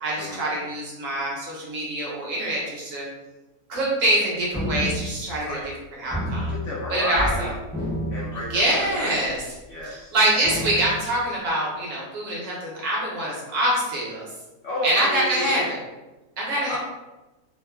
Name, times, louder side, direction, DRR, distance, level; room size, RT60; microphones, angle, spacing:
voice 1, 0.0-3.1 3.7-5.6 6.0-6.5 6.9-7.5 8.5-9.4 9.9-14.3 14.8-15.8 16.4-16.8, right 1 dB, 60° right, -4 dB, 1.1 m, -25 dB
sound 1, 4.5-5.8 6.1-7.4 7.7-9.0 9.5-9.6 10.4-11.3, equal, 5° left, 0.4 m, -30 dB
voice 2, 6.5-7.6 8.1-9.1 9.7-10.1 14.6-15.6 16.7-16.8, left 1 dB, 70° left, -5 dB, 0.7 m, -31 dB
2.9 x 2.2 x 2.2 m, 1.1 s
omnidirectional pair, 1.7 m